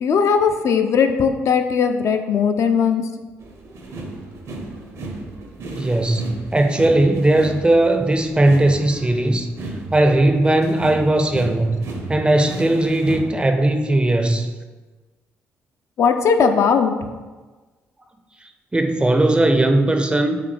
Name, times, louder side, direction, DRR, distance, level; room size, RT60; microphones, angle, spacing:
voice 1, 0.0-3.0 16.0-16.9, left 6 dB, 50° left, 6 dB, 0.3 m, -18 dB
sound 1, 3.4-13.2, right 2 dB, 55° right, 0.7 m, -34 dB
voice 2, 5.8-9.5 9.9-14.5 18.7-20.4, right 1 dB, 15° right, 6 dB, 0.4 m, -18 dB
4.1 x 2.7 x 3.2 m, 1.3 s
hypercardioid pair, 45°, 6 cm